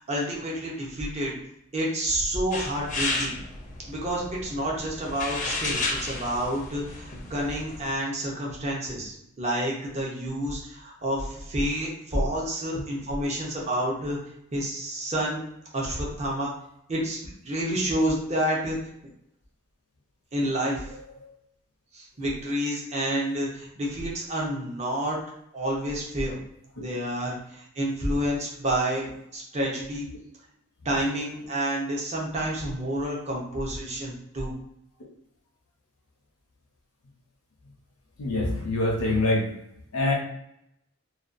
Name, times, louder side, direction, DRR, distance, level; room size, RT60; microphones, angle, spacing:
voice 1, 0.0-1.4 1.7-3.3 3.9-14.2 14.5-15.4 15.7-16.5 16.9-18.8 20.3-20.8 21.9-25.2 25.5-26.4 26.8-29.1 29.3-30.1 30.8-34.5, right 1 dB, 30° right, -3 dB, 0.6 m, -29 dB
sound 1, 2.5-7.9, left 2 dB, 35° left, 0.5 m, -33 dB
voice 2, 38.2-39.5 39.9-40.1, left 2 dB, 80° left, -2 dB, 0.6 m, -24 dB
2.5 x 2.2 x 2.5 m, 0.76 s
head